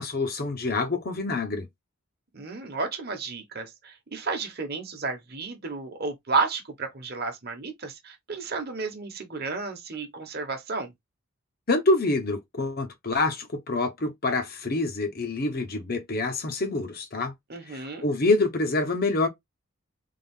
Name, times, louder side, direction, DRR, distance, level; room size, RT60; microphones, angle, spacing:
voice 1, 0.0-1.7 11.7-17.3 17.7-19.3, left 2 dB, 45° left, 0.8 m, -26 dB
voice 2, 2.3-10.9 17.5-18.1, right 4 dB, 45° right, 1.0 m, -32 dB
3.6 x 2.4 x 3.5 m
head